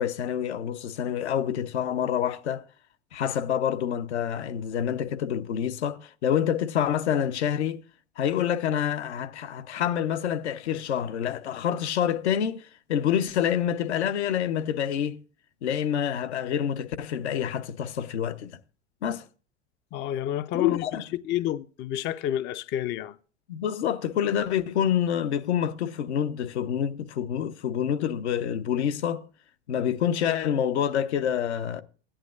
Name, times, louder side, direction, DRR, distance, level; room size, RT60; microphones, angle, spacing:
voice 1, 0.0-2.6 3.1-7.8 8.2-15.2 15.6-18.6 19.0-19.2 20.5-21.0 23.5-29.2 29.7-31.8, left 9 dB, 70° left, 1.0 m, -27 dB
voice 2, 19.9-20.8 21.1-23.2, left 12 dB, 35° left, 0.5 m, -29 dB
15.5 x 10.0 x 2.5 m
hypercardioid pair, 95°, 34 cm